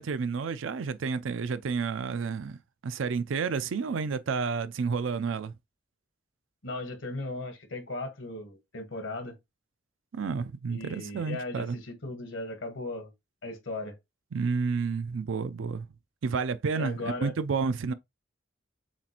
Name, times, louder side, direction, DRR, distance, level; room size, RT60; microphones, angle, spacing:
voice 1, 0.0-2.6 2.8-5.5 10.1-11.8 14.3-15.9 16.2-17.9, right 5 dB, 80° right, 0.4 m, -30 dB
voice 2, 6.6-9.3 10.7-13.1 13.4-13.9 16.8-17.3, left 2 dB, 80° left, 1.4 m, -37 dB
7.2 x 2.5 x 2.9 m
head